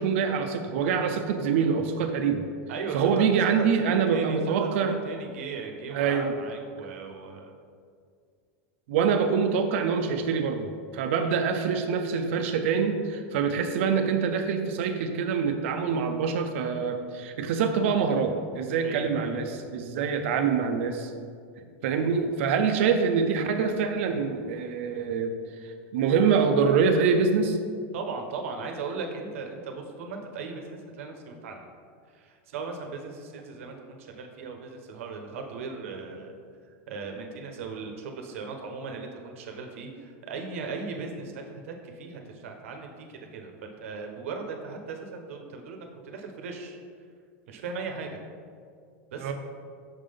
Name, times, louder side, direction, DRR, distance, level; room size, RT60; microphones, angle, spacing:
voice 1, 0.0-2.4 2.9-5.0 5.9-6.3 8.9-21.1 21.8-25.3 25.6-27.6 49.2-49.3, right 6 dB, 70° right, 6 dB, 0.5 m, -25 dB
voice 2, 2.7-7.5 11.2-11.5 18.8-19.4 27.9-31.7 32.1-36.3 36.9-46.8 47.5-48.1 49.1-49.3, right 4 dB, 85° right, 4 dB, 0.9 m, -38 dB
6.2 x 3.8 x 5.1 m, 2.2 s
supercardioid pair, 155°, 7 cm